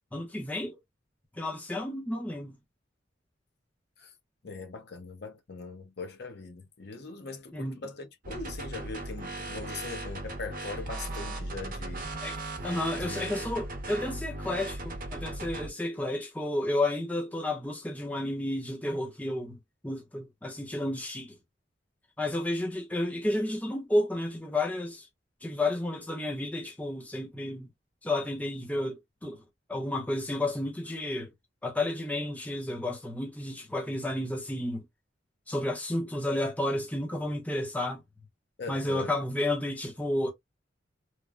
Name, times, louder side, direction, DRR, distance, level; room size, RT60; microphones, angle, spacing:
voice 1, 0.1-0.8 1.4-2.5 7.5-7.8 12.2-19.6 19.8-21.4 22.2-25.1 25.4-27.7 28.0-29.4 29.7-31.3 31.6-34.9 35.5-38.0 38.7-40.3, left 1 dB, 10° left, 0.6 m, -31 dB
voice 2, 4.4-12.1 13.0-13.3 38.6-39.2, left 3 dB, 60° left, 0.8 m, -41 dB
sound 1, 8.2-15.7, right 2 dB, 45° right, 0.8 m, -37 dB
3.1 x 2.0 x 2.3 m
head